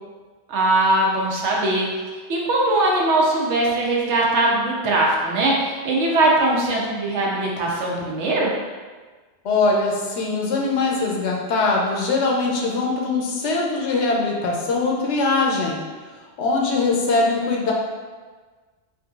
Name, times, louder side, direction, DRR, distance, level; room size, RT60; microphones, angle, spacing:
voice 1, 0.5-1.8 2.3-8.5, right 2 dB, 75° right, -3 dB, 1.0 m, -20 dB
voice 2, 9.4-15.8 16.4-17.7, left 3 dB, 80° left, -1 dB, 0.9 m, -21 dB
3.6 x 2.6 x 2.3 m, 1.4 s
omnidirectional pair, 1.2 m